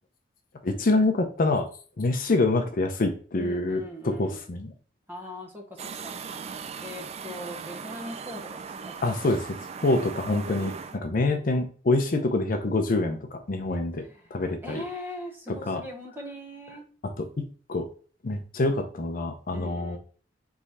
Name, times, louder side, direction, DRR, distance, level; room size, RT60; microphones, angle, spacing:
voice 1, 0.6-1.7 2.0-4.7 9.0-9.5 9.8-14.0 14.3-14.8 15.5-15.8 17.2-17.9 18.2-20.0, left 2 dB, 50° left, 5 dB, 0.6 m, -26 dB
voice 2, 3.3-4.5 5.1-6.3 6.8-9.3 10.3-10.8 14.0-14.3 14.6-16.9 19.5-20.0, left 1 dB, 10° right, 1 dB, 0.9 m, -40 dB
sound 1, 5.8-11.0, right 6 dB, 35° right, 0.3 m, -39 dB
3.6 x 3.2 x 4.1 m, 0.40 s
head